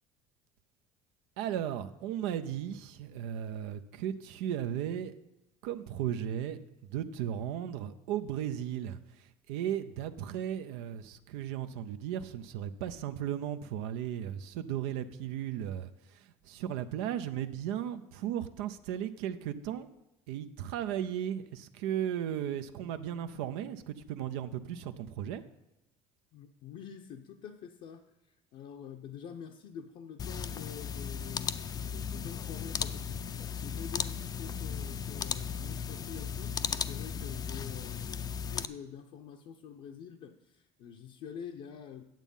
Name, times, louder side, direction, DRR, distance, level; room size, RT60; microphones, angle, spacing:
voice 1, 1.4-5.1 5.6-19.9 20.3-25.4, right 10 dB, 85° right, 0.6 m, -36 dB
voice 2, 26.3-38.2 38.5-42.0, left 8 dB, 60° left, 0.7 m, -47 dB
sound 1, 30.2-38.7, left 7 dB, 30° left, 0.4 m, -36 dB
9.0 x 7.3 x 5.4 m
supercardioid pair, 105°, 14 cm